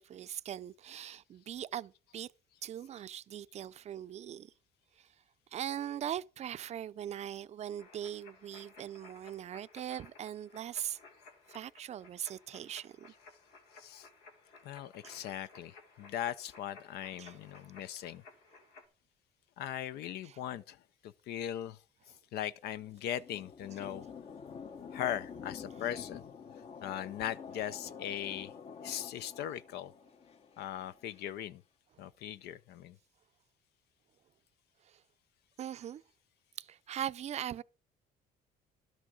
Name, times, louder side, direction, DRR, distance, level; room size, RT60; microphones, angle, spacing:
voice 1, 0.0-2.3 2.6-4.5 5.0-5.1 5.5-11.0 11.5-13.1 15.0-15.3 17.2-17.4 20.2-20.4 28.3-28.4 34.9-35.0 35.6-36.0 36.6-37.6, right 10 dB, 40° right, 0.5 m, -41 dB
sound 1, 7.8-18.9, left 4 dB, 90° left, 2.2 m, -57 dB
voice 2, 14.6-18.2 19.6-20.8 21.0-21.8 22.3-24.0 24.9-26.2 26.8-28.5 28.8-29.9 30.6-31.6 32.0-33.0, left 11 dB, 75° left, 0.5 m, -39 dB
sound 2, 22.8-31.2, left 6 dB, 40° left, 0.8 m, -48 dB
12.0 x 6.2 x 6.2 m
cardioid pair, 110°, 17 cm